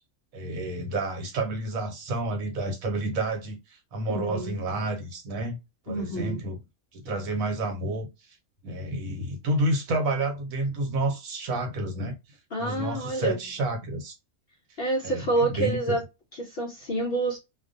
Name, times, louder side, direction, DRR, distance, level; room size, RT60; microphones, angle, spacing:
voice 1, 0.3-3.6 3.9-5.6 5.9-6.6 6.9-8.1 8.6-12.1 12.6-14.1 15.0-15.3 15.6-16.0, right 2 dB, 70° right, 1.2 m, -29 dB
voice 2, 4.1-4.6 5.9-6.5 12.5-13.4 14.8-16.0 16.3-17.4, right 2 dB, 60° left, 0.6 m, -28 dB
2.5 x 2.2 x 2.5 m
omnidirectional pair, 1.5 m